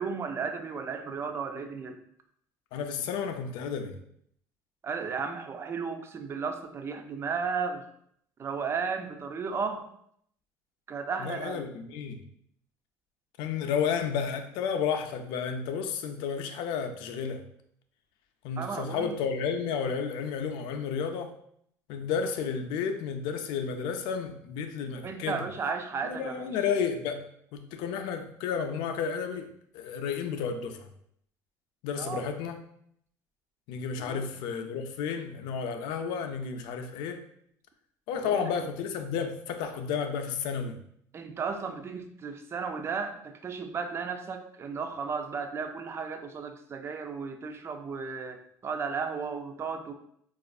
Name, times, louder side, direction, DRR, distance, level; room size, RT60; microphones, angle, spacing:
voice 1, 0.0-2.0 4.8-7.9 8.4-9.9 10.9-11.6 18.6-19.2 25.0-26.6 32.0-32.2 34.0-34.3 38.1-38.5 41.1-49.9, right 5 dB, 35° right, 7 dB, 0.4 m, -34 dB
voice 2, 2.7-4.0 11.2-12.2 13.4-17.4 18.4-21.3 21.9-25.5 26.0-27.3 27.5-30.9 31.8-32.6 33.7-37.2 38.1-40.8, left 6 dB, 75° left, 7 dB, 0.4 m, -32 dB
4.2 x 2.4 x 2.3 m, 0.70 s
supercardioid pair, 95°, 8 cm